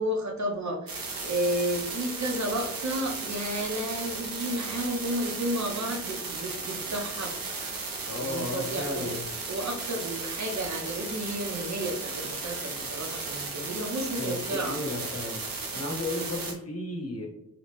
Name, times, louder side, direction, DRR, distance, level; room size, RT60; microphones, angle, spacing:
voice 1, 0.0-9.2 9.5-14.8, right 1 dB, 55° right, 2 dB, 0.8 m, -32 dB
sound 1, 0.9-16.5, right 3 dB, 85° right, 0.8 m, -35 dB
voice 2, 8.1-9.2 14.2-15.4 15.7-17.3, left 2 dB, 45° left, -1 dB, 1.1 m, -34 dB
4.0 x 2.2 x 3.0 m, 0.82 s
wide cardioid pair, 80°, 33 cm